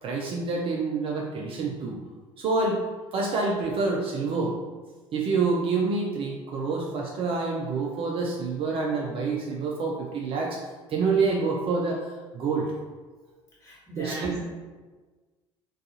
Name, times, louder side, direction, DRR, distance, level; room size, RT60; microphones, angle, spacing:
voice 1, 0.0-2.0 2.4-2.8 3.1-4.6 5.1-10.6 10.9-12.7 14.0-14.3, right 4 dB, 35° right, -1 dB, 0.4 m, -27 dB
voice 2, 13.6-14.4, right 2 dB, 20° left, -7 dB, 1.2 m, -37 dB
2.3 x 2.3 x 2.7 m, 1.3 s
figure-of-eight pair, 65°, 16 cm